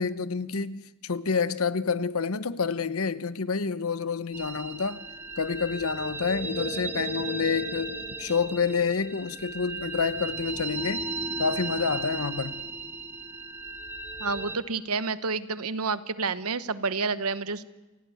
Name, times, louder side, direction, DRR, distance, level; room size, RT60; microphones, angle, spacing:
voice 1, 0.0-5.0 5.4-11.1 11.4-12.6, left 5 dB, 70° left, 0.9 m, -28 dB
sound 1, 4.3-14.6, right 3 dB, 10° right, 1.5 m, -36 dB
voice 2, 14.2-17.6, right 4 dB, 85° right, 1.1 m, -29 dB
28.5 x 16.0 x 9.2 m
head